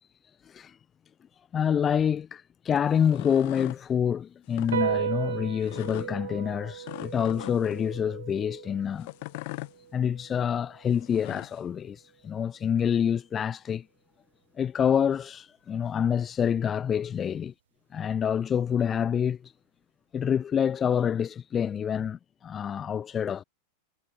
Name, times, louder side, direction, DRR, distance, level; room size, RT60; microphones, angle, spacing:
voice 1, 0.5-0.8 1.5-9.1 9.9-13.9 14.6-17.5 17.9-19.5 20.1-23.4, left 8 dB, 25° left, 0.3 m, -27 dB
sound 1, 2.9-3.8 4.5-4.8 5.7-6.1 6.8-7.8 9.0-9.7 10.9-11.6, left 25 dB, 50° left, 1.4 m, -40 dB
sound 2, 4.7-11.4, right 9 dB, 65° right, 0.7 m, -36 dB
figure-of-eight pair, 90°, 0 cm